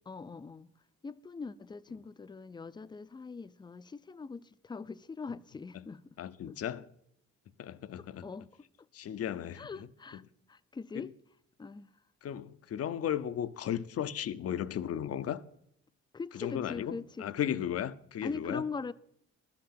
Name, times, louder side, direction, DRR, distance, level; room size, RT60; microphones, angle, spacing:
voice 1, 0.1-0.7 1.0-6.2 6.5-6.6 8.0-8.7 9.5-10.2 10.5-11.1 11.6-11.9 16.1-17.6 18.2-18.9, left 4 dB, 15° left, 0.4 m, -42 dB
voice 2, 6.2-6.8 7.6-8.3 8.9-9.7 10.9-11.1 12.2-15.4 16.3-18.6, left 10 dB, 55° left, 0.6 m, -35 dB
12.5 x 5.9 x 8.5 m
cardioid pair, 90°, 30 cm